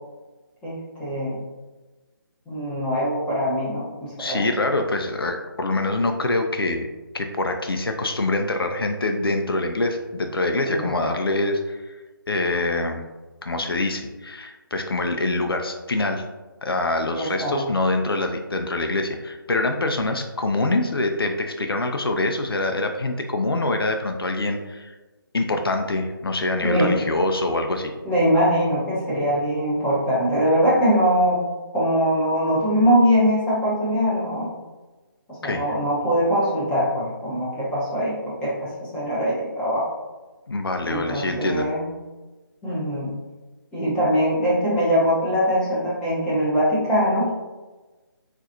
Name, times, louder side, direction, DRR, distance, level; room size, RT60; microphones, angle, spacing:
voice 1, 0.6-1.4 2.5-4.4 10.7-10.9 17.1-17.6 26.6-26.9 28.0-31.4 31.7-34.5 35.3-39.9 40.8-41.9 42.6-43.1 43.7-47.3, equal, 5° left, -9 dB, 0.8 m, -22 dB
voice 2, 4.2-6.9 7.1-11.8 12.3-13.0 13.4-16.2 16.6-24.9 25.3-27.9 35.4-35.7 40.5-41.7, left 2 dB, 80° left, 5 dB, 0.5 m, -25 dB
3.8 x 2.5 x 2.8 m, 1.2 s
figure-of-eight pair, 155°, 12 cm